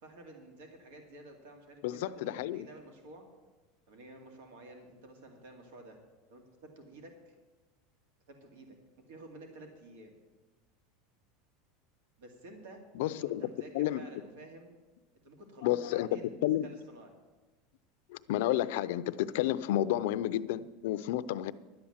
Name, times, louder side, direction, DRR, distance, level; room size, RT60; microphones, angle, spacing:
voice 1, 0.0-3.3 3.9-6.0 6.3-7.3 8.3-8.8 9.1-10.1 12.2-12.8 13.1-14.7 15.2-17.1, right 2 dB, 85° right, 2.2 m, -51 dB
voice 2, 1.8-2.7 13.0-13.5 13.7-14.1 15.6-16.7 18.1-21.5, left 13 dB, 70° left, 0.5 m, -31 dB
11.5 x 8.7 x 7.2 m
supercardioid pair, 160°, 0 cm